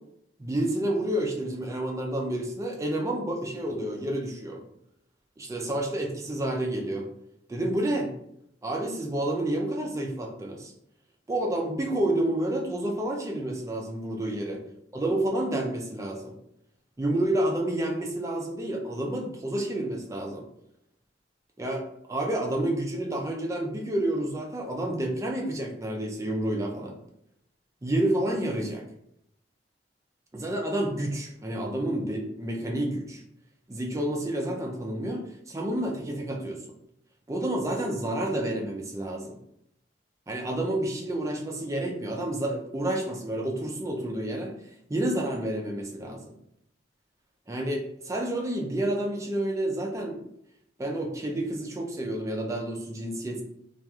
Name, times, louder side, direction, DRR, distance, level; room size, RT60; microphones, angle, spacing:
voice 1, 0.4-4.6 5.4-7.1 7.5-8.1 8.6-10.7 11.3-14.6 14.9-16.3 17.0-20.5 21.6-27.0 27.8-28.9 30.3-33.2 33.7-36.7 37.3-39.4 40.3-44.5 44.9-46.2 47.5-50.2 50.8-53.4, right 1 dB, 15° right, 1 dB, 0.3 m, -29 dB
2.9 x 2.4 x 2.2 m, 0.75 s
head